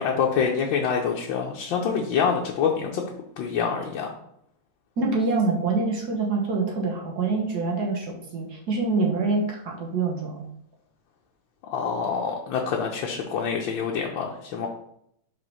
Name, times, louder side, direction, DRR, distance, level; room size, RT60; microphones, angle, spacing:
voice 1, 0.0-3.0 3.4-4.1 11.7-14.7, left 6 dB, 80° left, -1 dB, 1.5 m, -26 dB
voice 2, 5.0-10.4, right 3 dB, 55° right, 0 dB, 1.7 m, -25 dB
5.0 x 4.2 x 5.5 m, 0.73 s
omnidirectional pair, 2.1 m